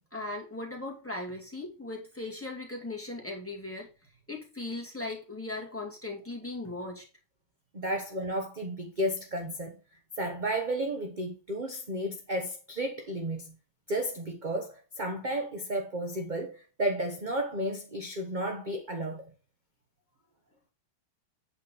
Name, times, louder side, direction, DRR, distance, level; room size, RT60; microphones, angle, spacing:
voice 1, 0.1-7.1, left 2 dB, 5° left, 2.1 m, -38 dB
voice 2, 7.7-9.8 10.2-13.5 13.9-19.2, right 1 dB, 30° right, 0.9 m, -33 dB
8.5 x 4.4 x 5.4 m
omnidirectional pair, 2.3 m